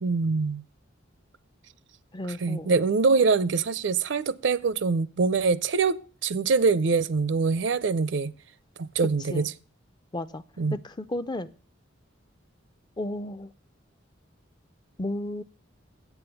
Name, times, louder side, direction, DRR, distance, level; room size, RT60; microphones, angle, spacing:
voice 1, 0.0-0.6 2.3-8.3 8.8-9.5 10.6-10.8, right 4 dB, 65° right, 0.5 m, -24 dB
voice 2, 2.1-2.7 9.3-9.5 10.1-10.4 10.8-11.5 13.0-13.5 15.0-15.4, left 1 dB, 20° left, 0.4 m, -33 dB
8.3 x 7.0 x 6.9 m
head